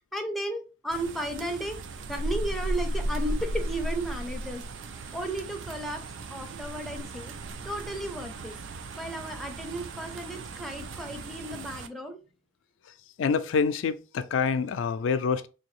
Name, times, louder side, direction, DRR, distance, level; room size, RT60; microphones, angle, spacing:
voice 1, 0.1-1.8 2.1-4.6 5.1-6.0 6.3-7.3 7.6-8.6 9.0-12.2, right 1 dB, ahead, 0.5 m, -34 dB
sound 1, 0.9-11.9, right 1 dB, 80° right, 0.4 m, -36 dB
voice 2, 13.2-15.5, left 5 dB, 85° left, 0.4 m, -26 dB
3.7 x 2.7 x 3.1 m
head